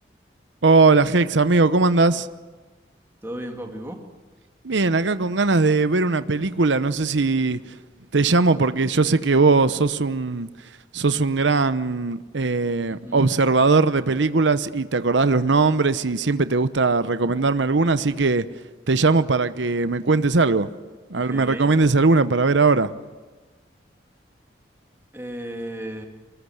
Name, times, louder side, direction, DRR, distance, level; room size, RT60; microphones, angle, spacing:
voice 1, 0.6-2.3 4.6-7.6 8.1-10.5 10.9-18.4 18.9-20.7 21.1-22.9, right 3 dB, 85° right, 0.9 m, -19 dB
voice 2, 3.2-4.0 12.9-13.4 21.1-21.7 25.1-26.1, right 1 dB, 15° right, 2.5 m, -34 dB
24.0 x 20.0 x 8.1 m
head